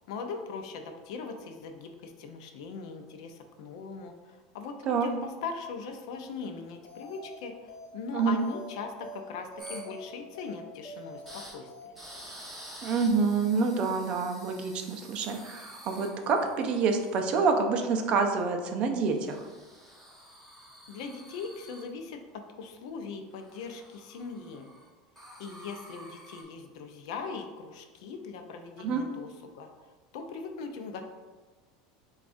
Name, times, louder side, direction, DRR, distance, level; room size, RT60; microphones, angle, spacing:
voice 1, 0.1-11.7 20.9-22.2 22.6-24.7 25.4-29.3 29.5-29.7 30.1-31.0, left 5 dB, 70° left, 5 dB, 0.5 m, -40 dB
sound 1, 6.8-7.4 7.7-7.9 8.2-8.7 9.0-9.2 9.5-10.0 10.3-10.5 10.8-11.4 11.7-11.9, equal, 20° left, 1.1 m, -45 dB
sound 2, 9.6-9.8 11.3-11.5 12.0-17.5 19.1-21.8 23.4-24.9 25.2-26.4, equal, ahead, 0.9 m, -49 dB
voice 2, 12.8-19.5 28.8-29.0, right 4 dB, 35° right, 4 dB, 0.5 m, -27 dB
6.9 x 2.4 x 2.6 m, 1.3 s
supercardioid pair, 155°, 3 cm